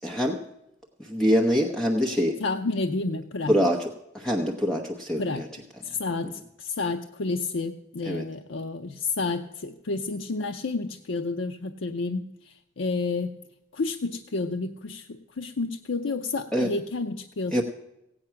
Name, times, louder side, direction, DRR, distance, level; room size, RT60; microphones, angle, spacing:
voice 1, 0.0-0.4 1.0-2.4 3.5-3.9 4.1-5.5 8.1-8.2 16.5-16.7 17.5-17.6, equal, 5° left, 0 dB, 0.9 m, -24 dB
voice 2, 2.4-3.5 5.2-5.4 5.8-13.3 13.7-17.6, left 3 dB, 70° left, 6 dB, 0.6 m, -30 dB
16.5 x 8.8 x 5.8 m, 0.86 s
head